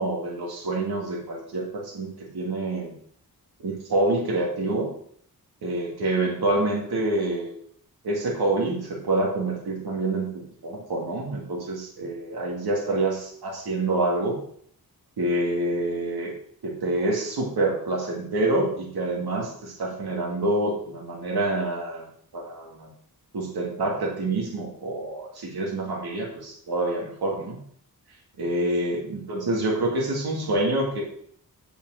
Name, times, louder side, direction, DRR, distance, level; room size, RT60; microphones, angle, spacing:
voice 1, 0.0-2.9 3.6-4.9 5.6-7.6 8.0-14.4 15.2-16.3 16.6-22.1 22.3-22.9 23.3-27.6 28.4-31.0, right 2 dB, 80° right, -1 dB, 2.5 m, -27 dB
7.6 x 7.0 x 6.4 m, 0.62 s
wide cardioid pair, 125°, 37 cm